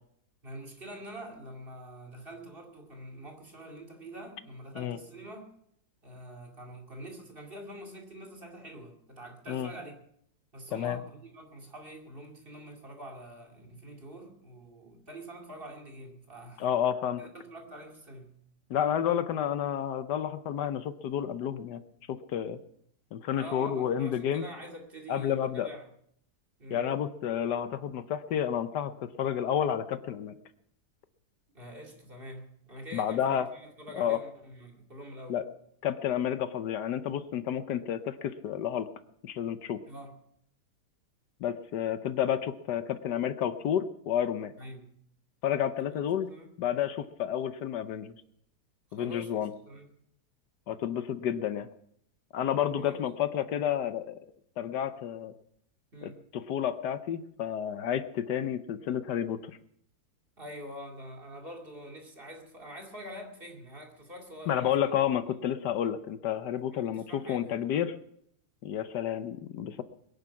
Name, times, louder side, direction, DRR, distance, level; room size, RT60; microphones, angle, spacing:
voice 1, 0.4-5.5 6.0-10.0 10.5-16.6 17.2-18.4 23.4-25.9 26.6-26.9 31.5-35.4 39.9-40.2 44.6-45.0 46.2-46.5 48.9-49.3 49.6-49.9 52.8-53.1 55.9-56.2 60.4-64.9 66.7-67.5, right 1 dB, 30° right, 2.7 m, -45 dB
voice 2, 16.6-17.2 18.7-21.8 22.1-22.6 23.1-24.4 25.1-25.7 26.7-30.3 32.9-33.5 33.9-34.2 35.3-35.4 35.8-38.9 39.2-39.8 41.4-44.5 45.4-46.3 46.6-48.2 48.9-49.5 50.7-51.7 52.3-54.2 54.6-55.3 56.0-59.6 64.5-67.9 68.6-69.8, left 9 dB, 75° left, 1.4 m, -30 dB
22.0 x 10.5 x 5.9 m
omnidirectional pair, 1.8 m